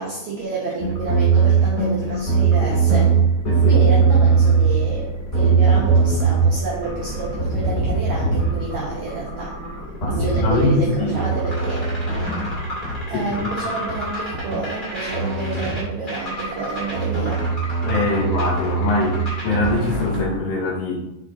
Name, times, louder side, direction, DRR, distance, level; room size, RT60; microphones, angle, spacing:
voice 1, 0.0-3.2 3.7-9.5 10.1-11.9 13.1-17.4, right 3 dB, 75° right, -5 dB, 1.7 m, -29 dB
sound 1, 0.8-20.2, right 5 dB, 20° left, 1.3 m, -21 dB
voice 2, 3.5-3.8 10.0-11.1 13.1-13.7 17.8-21.0, left 2 dB, 75° left, -2 dB, 2.6 m, -23 dB
5.3 x 5.2 x 3.7 m, 0.95 s
omnidirectional pair, 4.8 m